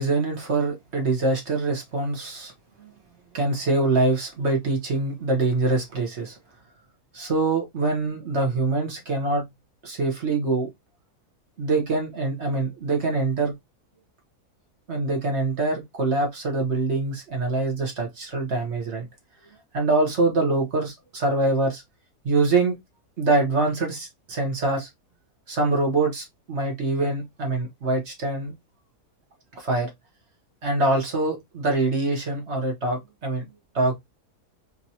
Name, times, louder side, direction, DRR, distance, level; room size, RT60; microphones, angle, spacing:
voice 1, 0.0-2.5 2.8-2.9 3.3-6.4 7.1-9.5 9.8-10.7 11.6-13.5 14.9-19.1 19.7-21.8 22.2-22.7 23.2-24.9 25.5-28.5 29.5-29.9 30.6-33.4 33.7-33.9, right 2 dB, 45° right, 1.4 m, -24 dB
3.7 x 3.0 x 2.7 m
omnidirectional pair, 1.7 m